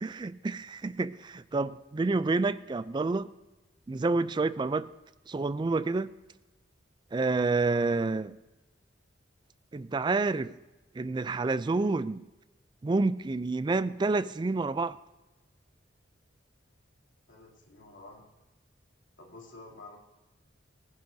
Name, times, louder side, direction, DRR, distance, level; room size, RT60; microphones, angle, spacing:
voice 1, 0.0-3.3 3.9-4.9 5.3-6.1 7.1-8.4 9.7-10.5 11.0-12.3 12.8-15.0, right 3 dB, 25° right, 15 dB, 0.3 m, -28 dB
voice 2, 17.3-18.3 19.2-20.0, left 2 dB, 80° left, -3 dB, 3.0 m, -50 dB
24.0 x 10.5 x 2.7 m, 1.1 s
head